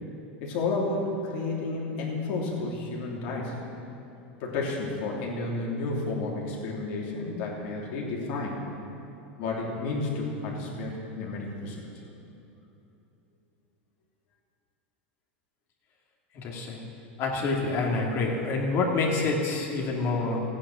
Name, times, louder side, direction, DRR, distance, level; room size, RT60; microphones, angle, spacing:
voice 1, 0.4-3.6 4.4-8.6 9.4-11.8, left 3 dB, 65° left, -3 dB, 3.3 m, -31 dB
voice 2, 16.3-16.8 17.2-20.4, left 3 dB, 45° left, -2 dB, 2.5 m, -27 dB
14.5 x 9.7 x 6.3 m, 2.9 s
hypercardioid pair, 105°, 6 cm